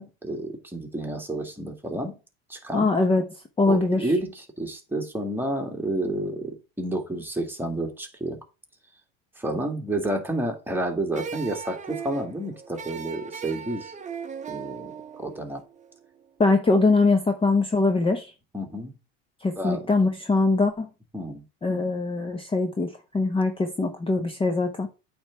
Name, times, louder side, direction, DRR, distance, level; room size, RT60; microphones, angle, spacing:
voice 1, 0.0-2.2 2.5-2.9 3.7-8.4 9.4-13.9 14.5-15.6 18.5-18.9 19.6-19.9 21.1-21.4, right 1 dB, 5° right, 2.0 m, -30 dB
voice 2, 2.7-3.2 3.6-4.1 16.4-18.3 19.4-20.9 21.6-24.9, left 3 dB, 20° left, 1.0 m, -22 dB
sound 1, 11.1-16.2, right 7 dB, 25° right, 1.0 m, -38 dB
8.6 x 3.5 x 6.0 m
supercardioid pair, 95°, 30 cm